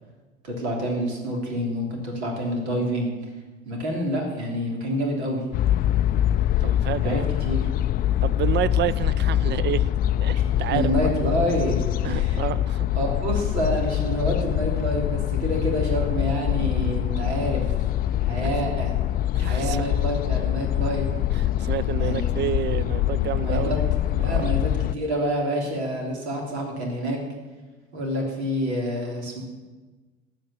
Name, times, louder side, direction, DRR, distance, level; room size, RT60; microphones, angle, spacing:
voice 1, 0.4-3.1 3.6-5.4 7.0-7.6 10.3-10.4 10.7-12.4 12.9-17.6 18.3-18.9 19.4-21.1 22.0-22.4 23.4-23.8 24.1-27.2 27.9-29.4, equal, 75° right, 1 dB, 3.2 m, -27 dB
sound 1, 5.5-24.9, left 12 dB, 30° left, 0.4 m, -24 dB
voice 2, 6.6-7.2 8.2-9.9 10.2-10.9 12.0-12.9 18.4-18.5 19.3-19.8 21.4-23.7 24.2-24.5, right 11 dB, 30° right, 19 dB, 0.5 m, -29 dB
14.5 x 8.9 x 7.2 m, 1.3 s
figure-of-eight pair, 65°, 34 cm